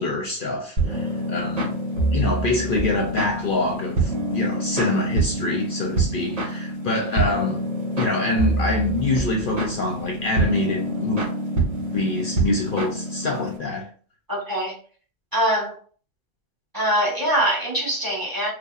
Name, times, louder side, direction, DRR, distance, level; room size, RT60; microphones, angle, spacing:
voice 1, 0.0-1.8 2.1-7.7 8.0-11.3 11.9-13.9, left 2 dB, 55° left, 0.7 m, -25 dB
sound 1, 0.8-13.6, right 2 dB, 50° right, 1.8 m, -26 dB
voice 2, 14.3-14.8 15.3-15.8 16.7-18.5, right 1 dB, 20° right, 1.3 m, -23 dB
5.5 x 2.0 x 2.4 m
omnidirectional pair, 1.2 m